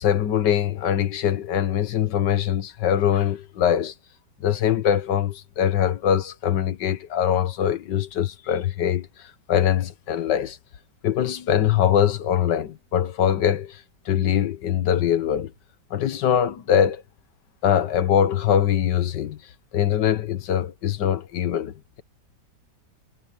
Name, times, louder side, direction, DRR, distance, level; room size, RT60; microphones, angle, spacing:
voice 1, 0.0-3.9 4.4-9.1 9.5-10.6 11.0-13.8 14.1-15.5 15.9-17.0 17.6-19.4 19.7-22.0, left 9 dB, 80° left, 1.7 m, -22 dB
omnidirectional pair, 1.8 m